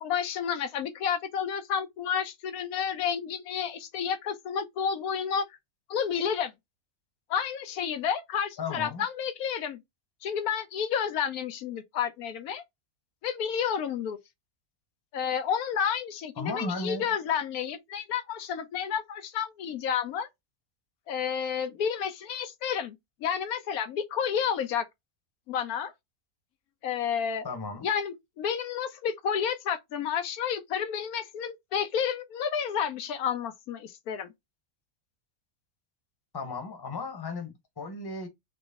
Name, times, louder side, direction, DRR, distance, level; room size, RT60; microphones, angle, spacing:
voice 1, 0.0-5.4 5.9-6.5 7.3-9.8 10.2-12.6 13.2-14.2 15.1-20.3 21.1-23.0 23.2-24.9 25.5-25.9 26.8-27.5 27.8-34.3, left 8 dB, 80° left, 1.2 m, -30 dB
voice 2, 8.6-9.0 16.4-17.1 27.4-27.9 36.3-38.3, left 3 dB, 20° left, 0.9 m, -35 dB
4.1 x 3.0 x 3.4 m
omnidirectional pair, 1.5 m